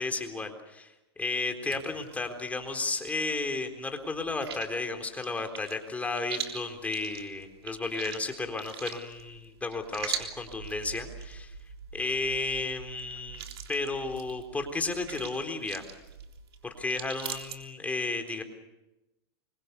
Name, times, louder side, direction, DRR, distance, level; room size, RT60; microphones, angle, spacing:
voice 1, 0.0-11.5 11.9-13.4 13.7-15.8 16.6-18.4, left 3 dB, 10° left, 5 dB, 3.8 m, -33 dB
sound 1, 1.7-3.5 3.8-17.6, right 7 dB, 80° right, 3.6 m, -42 dB
27.0 x 24.0 x 6.9 m, 0.98 s
hypercardioid pair, 120°, 13 cm